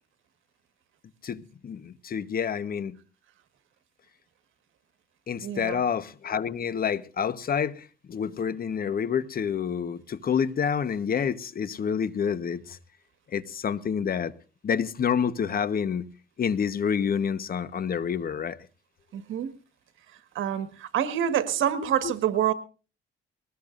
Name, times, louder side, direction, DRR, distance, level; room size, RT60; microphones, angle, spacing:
voice 1, 1.2-3.0 5.3-12.8 13.3-14.3 14.6-16.0 16.4-18.6 22.0-22.1, left 7 dB, 50° left, 1.2 m, -28 dB
voice 2, 5.4-5.8 19.1-19.5 20.3-22.5, right 10 dB, 80° right, 1.7 m, -27 dB
21.0 x 19.5 x 2.6 m
cardioid pair, 90°, 20 cm